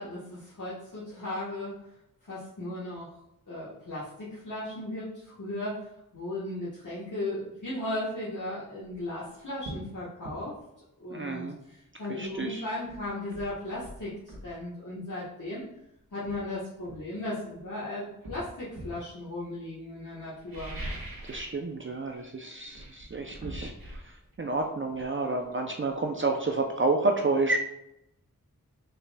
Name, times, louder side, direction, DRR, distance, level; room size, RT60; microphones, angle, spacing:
voice 1, 0.0-1.7 2.2-3.1 3.5-10.5 11.0-15.6 16.1-20.8, left 1 dB, 60° left, -8 dB, 1.2 m, -36 dB
sound 1, 8.8-9.0 9.6-9.9 10.2-10.4 12.3-12.4 12.9-14.5 15.6-15.7 16.2-17.6 18.2-19.0 20.3-21.6 21.9-22.2 22.5-26.1 26.4-26.5, right 1 dB, 80° right, 1.5 m, -43 dB
voice 2, 11.1-11.6 12.1-12.6 21.3-27.6, right 3 dB, 35° right, 3 dB, 0.5 m, -30 dB
5.2 x 4.1 x 2.2 m, 0.84 s
wide cardioid pair, 50°, 35 cm